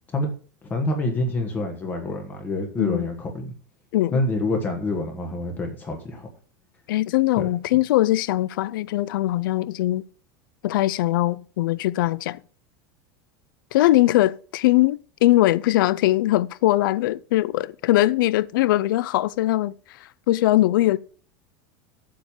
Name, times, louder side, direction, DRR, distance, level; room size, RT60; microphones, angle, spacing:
voice 1, 0.7-3.5 4.1-6.3, left 2 dB, 15° left, 1.4 m, -27 dB
voice 2, 6.9-10.0 10.6-12.4 13.7-19.7 20.3-21.0, left 16 dB, 75° left, 0.5 m, -21 dB
7.6 x 6.6 x 7.1 m
supercardioid pair, 180°, 11 cm